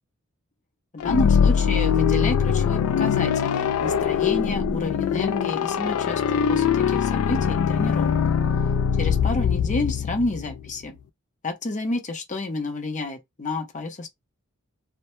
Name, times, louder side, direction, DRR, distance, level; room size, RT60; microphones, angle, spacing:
voice 1, 0.9-8.2 9.0-11.0 11.4-14.1, left 2 dB, 35° left, 0.6 m, -30 dB
sound 1, 1.0-10.7, left 7 dB, 80° left, 0.3 m, -22 dB
2.1 x 2.1 x 2.9 m
head